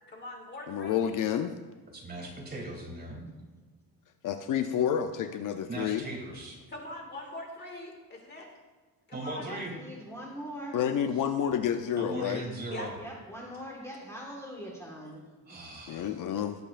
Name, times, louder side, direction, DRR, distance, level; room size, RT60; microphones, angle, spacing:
voice 1, 0.1-1.1 6.7-8.5 9.1-9.5 12.7-12.9, left 1 dB, 30° left, 1 dB, 2.1 m, -42 dB
voice 2, 0.7-1.5 4.2-6.0 10.7-12.4 15.9-16.6, left 9 dB, 60° left, 7 dB, 0.6 m, -29 dB
voice 3, 1.9-3.2 5.7-6.6 9.1-9.7 12.0-12.9 15.5-16.2, right 2 dB, 25° right, -1 dB, 2.9 m, -39 dB
voice 4, 9.3-10.8 12.9-15.2 15.5-15.6, equal, 10° left, -2 dB, 1.6 m, -42 dB
18.5 x 7.8 x 2.5 m, 1.4 s
cardioid pair, 150°, 37 cm